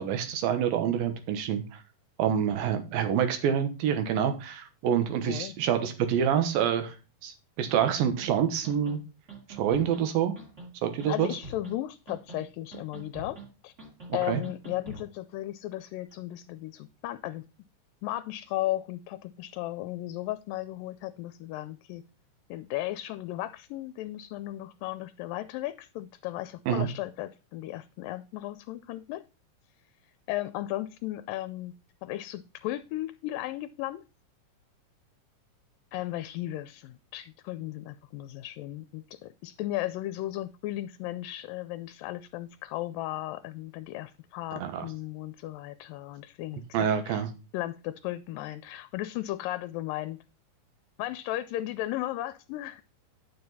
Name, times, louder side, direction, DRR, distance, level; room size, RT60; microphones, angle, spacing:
voice 1, 0.0-1.8 2.2-6.9 7.2-9.0 9.6-10.4 10.8-11.3 14.3-14.4 26.7-26.9 44.5-44.9 46.7-47.3, right 8 dB, 90° right, 8 dB, 3.0 m, -27 dB
sound 1, 8.2-8.3 8.6-9.0 9.3-10.0 10.4-10.7 11.0-11.8 12.1-12.5 12.7-13.5 13.8-14.1 14.4-15.1, right 3 dB, 25° right, 2.2 m, -44 dB
voice 2, 11.0-13.4 13.6-13.7 14.1-17.5 18.0-22.0 22.5-29.2 30.3-31.7 32.0-34.0 35.9-47.2 47.5-50.2 51.0-52.8, left 15 dB, 85° left, 12 dB, 2.2 m, -35 dB
9.6 x 7.0 x 4.0 m, 0.30 s
omnidirectional pair, 4.0 m